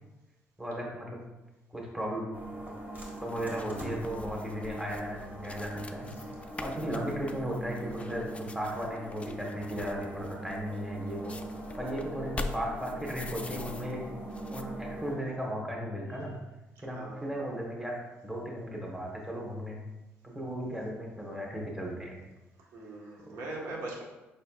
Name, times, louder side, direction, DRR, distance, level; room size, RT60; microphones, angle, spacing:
voice 1, 0.6-1.2 1.7-2.3 3.2-6.1 6.6-11.3 11.8-14.0 14.5-16.3 16.8-18.0 18.2-19.8 20.3-22.2, equal, 10° right, -2 dB, 1.3 m, -36 dB
sound 1, 2.3-15.1, right 1 dB, 35° right, 1.4 m, -41 dB
sound 2, 2.9-14.0 14.3-14.6, left 3 dB, 25° left, 0.4 m, -44 dB
voice 2, 16.9-17.5 22.7-24.0, right 2 dB, 75° right, -3 dB, 1.3 m, -41 dB
5.3 x 4.1 x 2.4 m, 1.0 s
supercardioid pair, 75°, 5 cm